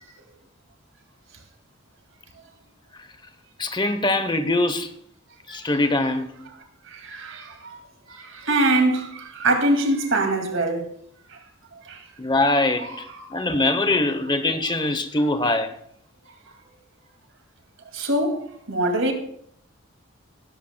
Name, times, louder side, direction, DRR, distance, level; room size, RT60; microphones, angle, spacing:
voice 1, 3.6-4.9 5.5-6.5 12.2-15.7, left 2 dB, 20° left, 0.8 m, -23 dB
voice 2, 6.9-7.8 8.1-10.9 11.8-12.0 12.8-13.3 13.6-13.7 17.9-19.1, right 2 dB, 65° right, 2.2 m, -24 dB
19.0 x 12.0 x 2.2 m
head